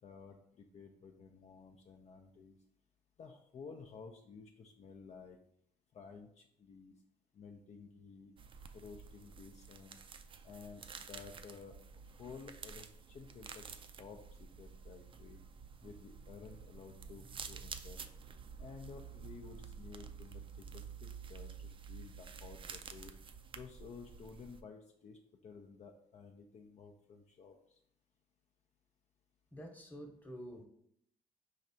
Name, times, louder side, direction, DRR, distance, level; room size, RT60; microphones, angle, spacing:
voice 1, 0.0-2.6 3.2-5.4 5.9-6.9 7.3-8.3 8.7-10.0 10.4-11.8 12.2-13.7 14.0-15.4 15.8-18.0 18.6-23.1 23.5-27.8, left 5 dB, 45° left, 3 dB, 0.5 m, -53 dB
sound 1, 8.4-24.6, right 6 dB, 35° right, 0.4 m, -50 dB
voice 2, 29.5-30.7, equal, 10° left, 2 dB, 1.0 m, -48 dB
5.0 x 3.2 x 2.7 m, 0.68 s
supercardioid pair, 80°, 15 cm